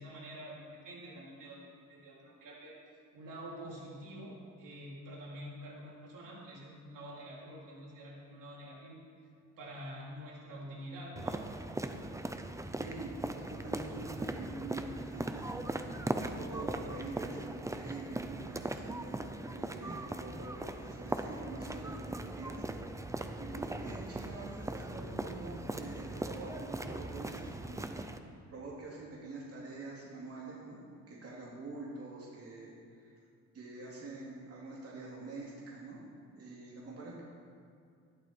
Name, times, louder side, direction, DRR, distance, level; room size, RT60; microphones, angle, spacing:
voice 1, 0.0-1.6 1.9-2.8 3.1-9.0 9.6-11.4, equal, 80° right, -5 dB, 3.7 m, -47 dB
sound 1, 11.2-28.2, right 2 dB, 10° right, 0.7 m, -39 dB
voice 2, 12.8-27.9 28.5-30.8 31.1-33.2 33.5-37.2, right 3 dB, 50° right, -5 dB, 2.8 m, -45 dB
14.0 x 11.5 x 4.4 m, 2.4 s
cardioid pair, 105°, 32 cm